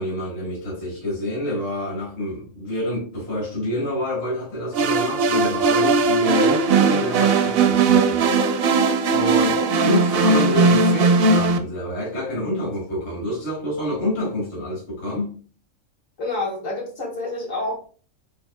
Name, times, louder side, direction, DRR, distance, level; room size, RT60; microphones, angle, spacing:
voice 1, 0.0-8.3 9.1-9.5 9.8-15.3, left 1 dB, 60° left, -5 dB, 1.7 m, -27 dB
sound 1, 4.7-11.6, right 4 dB, 65° right, 0.6 m, -18 dB
voice 2, 16.2-18.0, left 2 dB, 75° left, -6 dB, 2.2 m, -28 dB
7.2 x 2.5 x 2.2 m, 0.41 s
omnidirectional pair, 1.3 m